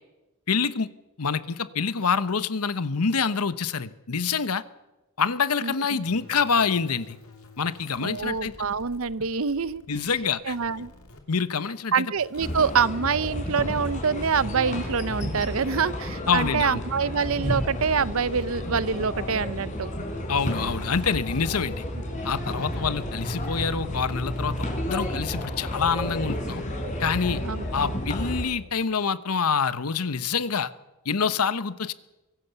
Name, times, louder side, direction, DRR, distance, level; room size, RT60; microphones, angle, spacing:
voice 1, 0.5-0.9 1.2-4.6 5.2-7.2 7.6-8.5 9.9-10.5 11.3-12.0 16.3-16.8 20.3-21.8 22.2-24.6 24.9-26.6 27.0-27.4 27.7-30.7 31.0-31.9, left 5 dB, 85° left, 15 dB, 1.0 m, -26 dB
voice 2, 5.6-6.0 8.0-10.1 10.4-10.9 11.9-19.9 27.4-27.9, right 6 dB, 65° right, 18 dB, 0.7 m, -26 dB
sound 1, 6.0-11.2 12.2-12.8, left 2 dB, 70° left, 2.8 m, -50 dB
sound 2, 12.4-28.4, left 1 dB, 35° left, 4.6 m, -31 dB
23.5 x 16.5 x 6.9 m, 1.0 s
head